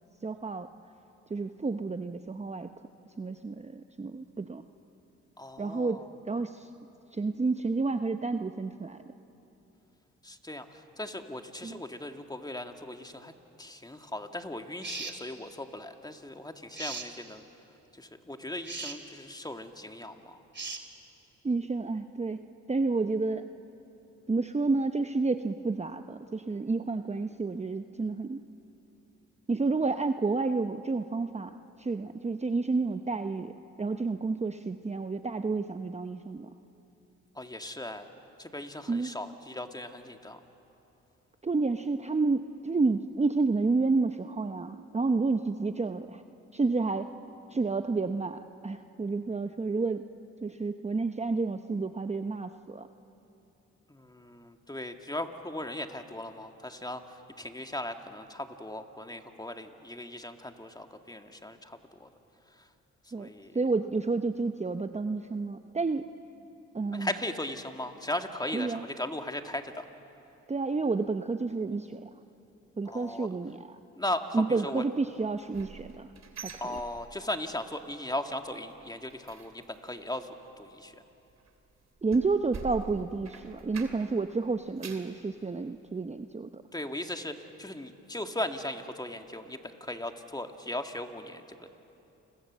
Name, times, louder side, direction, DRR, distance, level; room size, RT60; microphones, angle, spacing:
voice 1, 0.2-0.7 1.3-2.7 3.2-4.6 5.6-6.7 7.1-9.0 11.6-11.8 21.4-22.4 22.7-23.4 24.3-28.4 29.5-33.5 33.8-36.5 38.9-39.1 41.4-46.2 46.5-47.1 47.5-50.0 50.4-52.9 63.1-63.3 63.5-66.1 66.7-67.1 68.5-68.9 70.5-72.1 72.8-73.7 74.3-76.1 76.4-76.5 82.0-86.6, right 3 dB, 20° right, 8 dB, 0.8 m, -30 dB
voice 2, 5.4-6.1 10.2-13.3 13.6-17.5 17.9-20.4 37.4-38.1 38.4-40.4 53.9-62.1 62.6-62.7 63.2-63.5 66.9-69.9 72.9-73.3 74.0-74.8 76.6-81.0 86.7-91.7, left 1 dB, 10° left, 6 dB, 2.0 m, -38 dB
sound 1, 14.8-15.2 16.8-17.1 18.6-19.0 20.5-20.8, right 4 dB, 35° right, 2.6 m, -38 dB
sound 2, 75.2-77.5 77.8-78.2 78.4-84.2 84.6-85.2 85.7-85.8 86.2-86.3, right 5 dB, 55° right, 3.0 m, -46 dB
29.0 x 21.5 x 7.5 m, 2.9 s
supercardioid pair, 55°, 31 cm